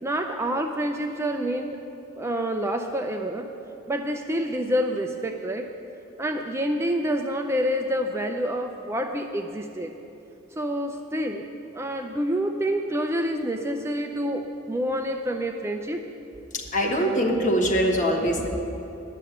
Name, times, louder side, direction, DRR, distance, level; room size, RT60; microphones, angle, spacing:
voice 1, 0.0-1.8 2.2-3.5 3.9-5.7 6.2-9.9 10.6-11.5 11.7-16.0, equal, 15° right, 4 dB, 0.4 m, -27 dB
voice 2, 16.5-18.5, equal, 40° left, 1 dB, 1.3 m, -23 dB
10.0 x 6.6 x 8.8 m, 2.9 s
head